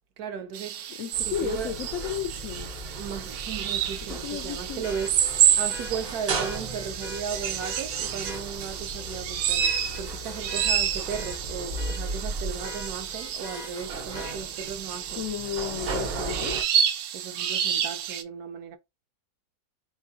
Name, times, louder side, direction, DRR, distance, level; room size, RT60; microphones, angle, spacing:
voice 1, 0.2-1.8 3.0-15.2 17.1-18.8, right 7 dB, 70° right, 1.0 m, -36 dB
sound 1, 0.5-18.2, right 9 dB, 90° right, 1.3 m, -29 dB
voice 2, 1.0-2.7 4.0-4.8 15.2-16.6, left 10 dB, 75° left, 0.7 m, -33 dB
sound 2, 1.1-16.6, right 2 dB, 50° right, 0.7 m, -37 dB
Vehicle horn car horn honking, 2.0-2.1 4.8-8.5 9.0-9.2 9.6-12.2 12.6-14.4 16.2-16.3, left 3 dB, 40° left, 0.6 m, -43 dB
4.1 x 3.4 x 2.7 m
omnidirectional pair, 1.9 m